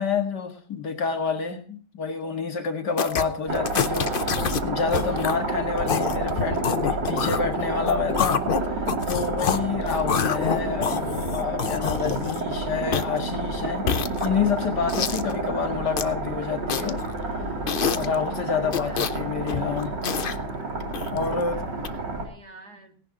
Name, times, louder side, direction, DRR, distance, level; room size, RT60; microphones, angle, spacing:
voice 1, 0.0-4.3 4.6-8.4 8.7-17.0 17.9-19.9 21.1-21.6, left 5 dB, 70° left, 5 dB, 2.5 m, -28 dB
sound 1, 3.0-3.2 3.5-4.6 4.9-5.4 5.8-9.6 9.9-12.5 12.9-13.2 13.7-14.5 14.9-15.3 15.7-16.1 16.7-17.1 17.7-18.1 18.7-19.2 19.5-20.4 20.9-21.3 21.8-21.9, left 7 dB, 50° left, 0.6 m, -27 dB
sound 2, 3.5-22.3, right 2 dB, 85° right, 3.7 m, -30 dB
voice 2, 18.5-19.3 21.2-23.0, right 3 dB, 65° right, 5 dB, 2.6 m, -50 dB
17.5 x 10.5 x 3.8 m, 0.43 s
omnidirectional pair, 1.8 m